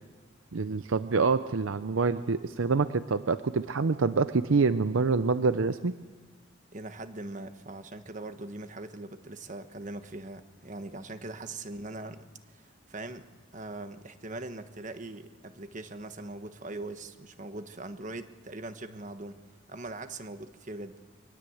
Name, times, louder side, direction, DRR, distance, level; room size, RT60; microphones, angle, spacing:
voice 1, 0.5-5.9, right 4 dB, 85° right, 12 dB, 0.6 m, -26 dB
voice 2, 6.7-19.4 19.7-21.0, right 2 dB, 40° right, 9 dB, 1.2 m, -41 dB
24.0 x 20.0 x 7.9 m, 1.3 s
head